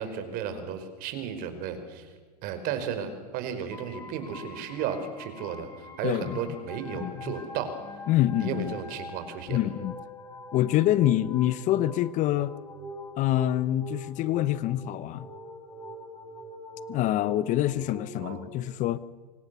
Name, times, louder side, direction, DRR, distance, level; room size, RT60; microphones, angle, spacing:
voice 1, 0.0-2.1 2.4-5.7 6.0-7.8 8.4-9.6 18.2-18.4, right 7 dB, 45° right, 9 dB, 5.0 m, -34 dB
sound 1, 3.7-18.5, left 1 dB, 15° left, 4.4 m, -44 dB
voice 2, 6.0-6.5 6.9-7.3 8.1-8.8 9.5-10.0 10.5-12.5 13.2-15.3 16.9-19.0, left 13 dB, 35° left, 16 dB, 0.9 m, -26 dB
28.0 x 25.5 x 7.0 m, 1.4 s
hypercardioid pair, 115°, 21 cm